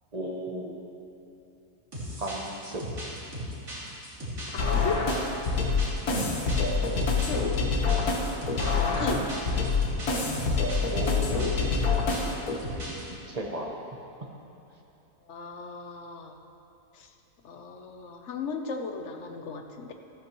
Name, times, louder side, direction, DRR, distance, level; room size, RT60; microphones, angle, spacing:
voice 1, 0.1-0.8 2.2-2.8 6.1-6.3 9.1-9.3 10.9-11.9 12.2-12.4 12.9-13.7, right 1 dB, 30° right, 0 dB, 1.1 m, -35 dB
sound 1, 1.9-13.1, equal, 55° right, 3.2 m, -37 dB
voice 2, 4.5-5.0 7.1-7.5 8.6-8.7 9.0-9.2 15.3-16.4 16.9-17.1 17.4-19.9, left 5 dB, 55° left, 5 dB, 1.1 m, -36 dB
sound 2, 4.6-12.6, left 4 dB, 90° left, 1.8 m, -26 dB
13.5 x 13.5 x 3.1 m, 2.9 s
omnidirectional pair, 1.5 m